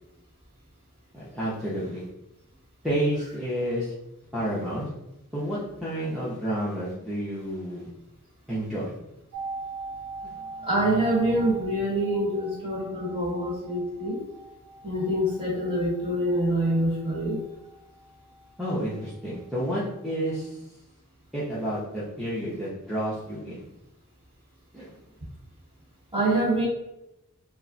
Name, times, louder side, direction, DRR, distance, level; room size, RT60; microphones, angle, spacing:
voice 1, 1.1-2.0 2.8-3.9 4.3-4.9 5.3-7.9 8.5-9.0 10.2-10.3 18.6-20.6 21.3-23.6 24.7-24.9, equal, ahead, -10 dB, 0.5 m, -30 dB
sound 1, 9.3-19.1 19.3-19.4, right 3 dB, 80° right, 0.5 m, -42 dB
voice 2, 10.6-14.2 14.8-17.4 26.1-26.7, right 1 dB, 25° right, -7 dB, 1.3 m, -25 dB
2.4 x 2.1 x 3.7 m, 0.91 s
head